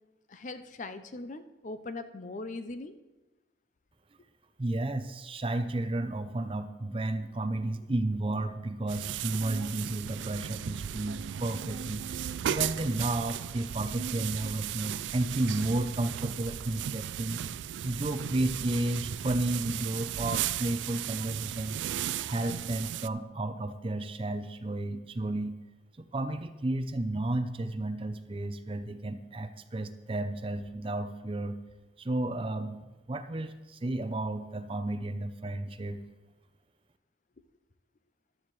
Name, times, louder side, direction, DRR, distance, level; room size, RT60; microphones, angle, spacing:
voice 1, 0.3-3.0, left 2 dB, 45° left, 10 dB, 0.6 m, -40 dB
voice 2, 4.6-12.2 12.5-17.4 17.8-21.8 22.3-25.6 26.0-31.6 32.0-32.8 33.1-36.0, right 2 dB, 30° right, 10 dB, 0.5 m, -32 dB
sound 1, 8.9-23.1, right 10 dB, 85° right, 0.3 m, -36 dB
14.0 x 11.5 x 3.2 m, 1.1 s
head